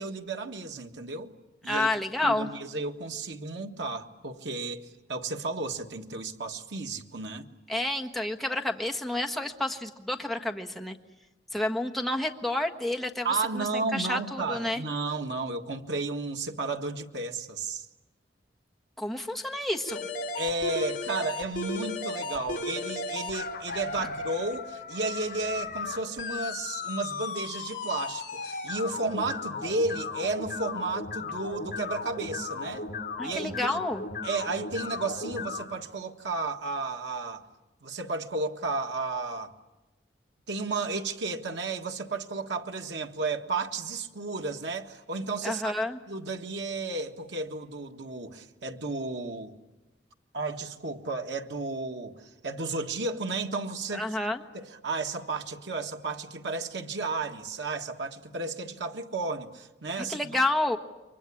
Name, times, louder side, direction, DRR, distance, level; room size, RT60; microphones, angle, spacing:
voice 1, 0.0-1.3 1.6-1.9 2.2-7.5 13.2-17.9 20.4-32.9 33.2-33.8 34.2-37.5 37.8-39.5 40.5-45.7 46.1-49.5 50.3-54.2 54.5-60.2, right 3 dB, 85° right, 1.7 m, -33 dB
voice 2, 1.7-2.5 7.7-11.0 11.5-14.8 19.0-20.0 24.0-24.1 33.2-34.0 45.4-46.0 53.9-54.4 60.0-60.8, left 1 dB, ahead, 1.4 m, -30 dB
sound 1, 19.9-35.6, left 3 dB, 50° left, 4.3 m, -35 dB
29.0 x 24.0 x 8.5 m
head